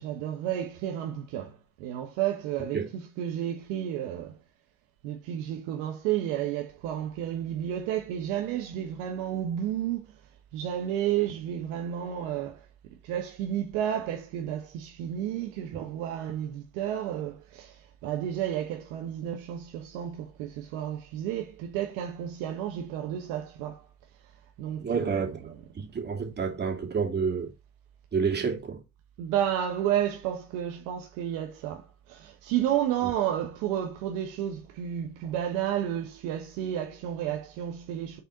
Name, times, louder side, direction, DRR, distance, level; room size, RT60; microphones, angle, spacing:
voice 1, 0.0-4.4 5.0-10.2 10.5-12.7 13.0-23.9 24.2-24.3 24.6-25.5 29.2-38.2, right 10 dB, 65° right, 1.2 m, -31 dB
voice 2, 24.8-27.5 28.1-28.8, right 5 dB, 30° right, 2.6 m, -29 dB
6.7 x 4.1 x 4.1 m
hypercardioid pair, 80°, 35 cm